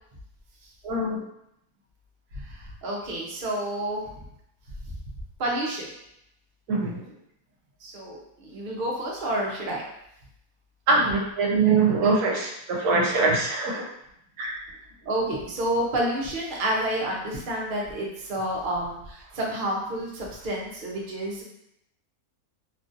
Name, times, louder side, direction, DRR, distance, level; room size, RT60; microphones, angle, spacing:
voice 1, 0.8-1.2 6.7-7.0 10.9-13.8 14.4-14.6, right 3 dB, 80° right, -1 dB, 1.1 m, -23 dB
voice 2, 2.3-4.1 5.4-5.9 7.8-9.8 15.0-21.4, right 1 dB, 55° right, -3 dB, 0.5 m, -29 dB
2.8 x 2.5 x 2.5 m, 0.79 s
omnidirectional pair, 1.7 m